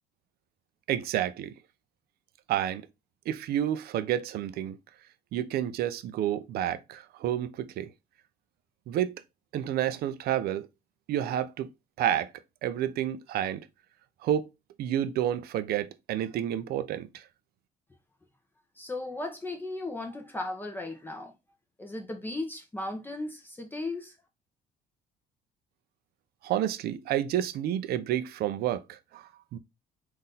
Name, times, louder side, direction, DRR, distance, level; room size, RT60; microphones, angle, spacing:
voice 1, 0.9-1.5 2.5-2.8 3.3-4.8 5.3-7.9 8.9-9.1 9.5-10.7 11.1-11.7 12.0-12.3 12.6-13.7 14.2-14.5 14.8-17.2 26.4-29.6, right 11 dB, 65° right, 0.5 m, -30 dB
voice 2, 18.8-21.3 21.8-24.1, left 2 dB, 10° left, 0.8 m, -36 dB
4.0 x 2.6 x 3.8 m
cardioid pair, 110°, 17 cm